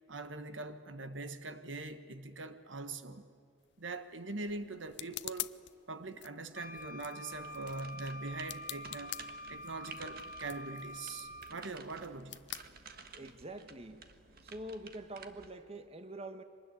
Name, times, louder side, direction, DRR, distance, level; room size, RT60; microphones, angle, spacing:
voice 1, 0.1-3.3 3.8-5.5 5.9-9.2 9.5-12.4, right 3 dB, 85° right, 10 dB, 1.4 m, -42 dB
sound 1, 3.6-13.4, left 15 dB, 65° left, 0.6 m, -48 dB
Wind instrument woodwind instrument, 6.5-11.7, equal, 45° left, 2.0 m, -47 dB
sound 2, 7.3-15.5, right 5 dB, 55° right, 1.6 m, -54 dB
voice 2, 13.1-14.1 14.4-16.4, right 1 dB, 35° right, 9 dB, 1.3 m, -45 dB
24.5 x 20.0 x 9.8 m, 2.4 s
head